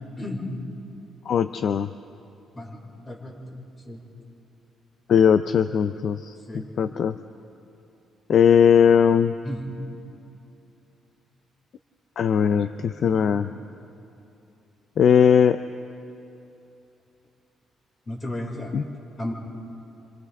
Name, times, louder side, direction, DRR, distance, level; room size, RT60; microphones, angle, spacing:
voice 1, 1.3-1.9 5.1-6.3 6.8-7.2 8.3-9.3 12.2-13.5 15.0-15.6 18.7-18.8, left 7 dB, 60° left, 11 dB, 0.5 m, -19 dB
voice 2, 3.1-3.4 3.8-4.0 6.5-7.0 9.4-9.7 13.0-13.4 18.1-18.8 19.2-19.3, left 1 dB, 35° left, -1 dB, 5.7 m, -34 dB
30.0 x 26.5 x 3.6 m, 2.8 s
cardioid pair, 90°, 0 cm